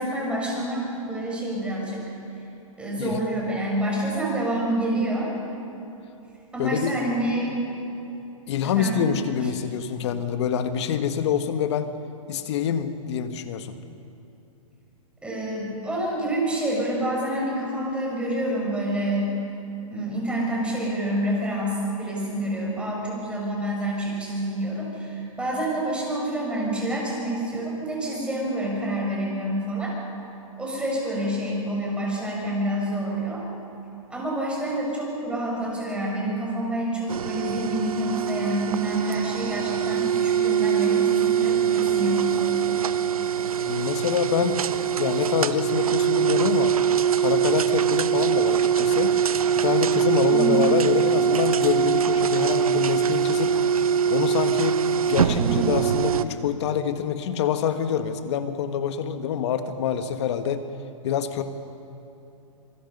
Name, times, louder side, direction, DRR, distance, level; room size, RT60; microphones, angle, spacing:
voice 1, 0.0-2.1 2.8-5.3 6.5-7.8 8.8-9.1 15.2-19.3 19.9-30.0 30.6-33.4 34.1-42.8 50.3-50.7 55.3-55.6, right 1 dB, 5° right, -3 dB, 5.8 m, -28 dB
voice 2, 6.6-7.0 8.5-12.0 12.3-13.7 43.7-44.6 45.0-46.7 47.2-49.1 49.6-53.5 54.1-54.8 55.1-60.7 61.0-61.4, left 8 dB, 50° left, 9 dB, 1.6 m, -26 dB
sound 1, 37.1-56.2, right 8 dB, 90° right, 0.9 m, -23 dB
27.0 x 20.5 x 5.5 m, 2.9 s
hypercardioid pair, 140°, 18 cm